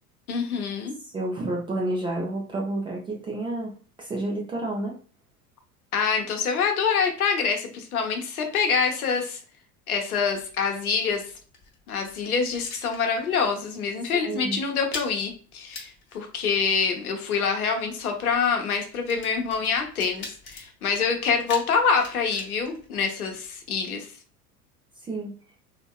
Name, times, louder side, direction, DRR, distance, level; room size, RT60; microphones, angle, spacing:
voice 1, 0.3-0.9 5.9-9.4 9.9-11.2 11.9-24.1, left 5 dB, 70° left, 3 dB, 0.9 m, -26 dB
voice 2, 1.1-3.7 4.0-4.9 14.1-14.6 25.1-25.3, right 2 dB, 10° right, -2 dB, 0.4 m, -30 dB
sound 1, 10.1-13.5 13.7-14.0 14.3-23.7, left 3 dB, 25° left, 0.9 m, -44 dB
3.5 x 2.7 x 2.2 m, 0.41 s
figure-of-eight pair, 80°, 45 cm